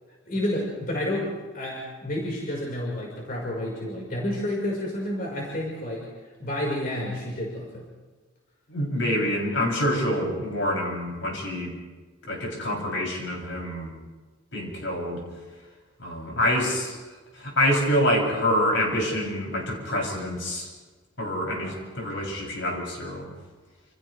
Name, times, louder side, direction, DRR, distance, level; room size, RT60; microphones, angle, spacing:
voice 1, 0.3-1.3 1.5-6.1 6.4-7.8 16.3-16.4 21.6-21.7, left 1 dB, 45° left, -3 dB, 5.2 m, -30 dB
voice 2, 8.7-11.7 12.3-13.9 14.5-15.2 16.0-17.0 17.3-20.7 21.2-23.3, equal, 70° left, -1 dB, 7.9 m, -26 dB
29.0 x 29.0 x 3.5 m, 1.3 s
head